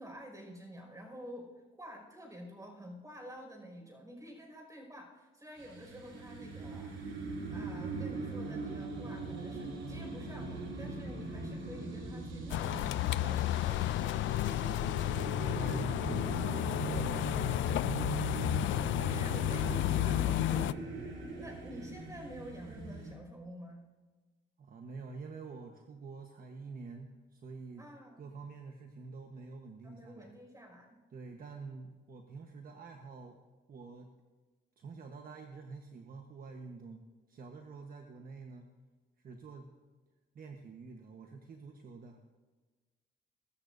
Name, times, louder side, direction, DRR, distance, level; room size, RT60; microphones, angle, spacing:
voice 1, 0.0-1.5 1.8-7.2 7.5-14.5 19.0-23.9 27.8-28.2 29.8-31.0, equal, 15° right, 2 dB, 5.4 m, -49 dB
sound 1, 5.6-23.1, right 3 dB, 75° right, 3.1 m, -41 dB
sound 2, 12.5-20.7, left 14 dB, 75° left, 0.4 m, -32 dB
voice 2, 15.1-18.0 24.6-27.9 28.2-30.4 31.1-33.4 33.7-34.1 34.8-37.0 37.3-38.7 39.2-39.7 40.3-42.2, right 4 dB, 45° right, 3 dB, 1.2 m, -47 dB
22.0 x 13.5 x 2.6 m, 1.3 s
cardioid pair, 90°, 20 cm